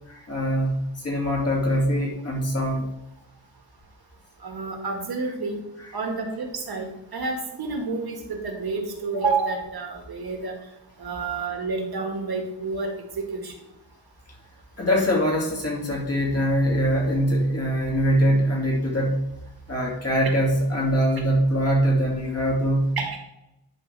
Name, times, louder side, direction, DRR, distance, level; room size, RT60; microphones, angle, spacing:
voice 1, 0.1-2.9 14.8-19.2 19.7-22.9, equal, 40° left, -2 dB, 2.4 m, -23 dB
voice 2, 4.4-5.6 5.9-10.6 11.0-12.9 13.2-13.5 23.0-23.2, right 4 dB, 65° right, 2 dB, 1.9 m, -29 dB
11.0 x 5.2 x 3.4 m, 0.91 s
wide cardioid pair, 115°, 40 cm